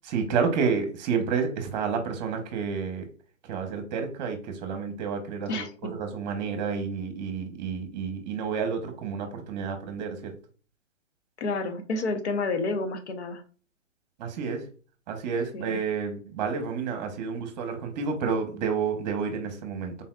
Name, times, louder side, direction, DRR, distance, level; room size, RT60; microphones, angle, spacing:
voice 1, 0.0-3.0 3.5-10.3 14.2-14.7 15.1-20.0, right 5 dB, 35° right, 6 dB, 1.1 m, -30 dB
voice 2, 5.5-5.9 11.4-13.4 15.5-15.8, left 3 dB, 60° left, 6 dB, 1.0 m, -30 dB
4.0 x 4.0 x 2.5 m, 0.38 s
hypercardioid pair, 135°, 38 cm